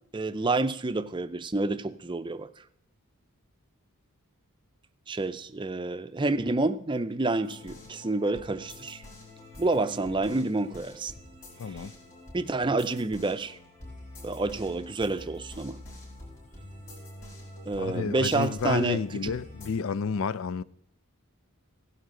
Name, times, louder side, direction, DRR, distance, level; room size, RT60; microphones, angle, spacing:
voice 1, 0.1-2.5 5.1-9.0 9.6-11.1 11.7-11.8 12.3-13.6 14.2-15.8 17.6-19.3, right 2 dB, 20° right, 0.5 m, -29 dB
sound 1, 7.4-19.7, left 1 dB, 40° left, 5.8 m, -46 dB
voice 2, 11.6-11.9 17.8-20.6, left 5 dB, 65° left, 0.4 m, -30 dB
16.5 x 11.0 x 3.8 m
head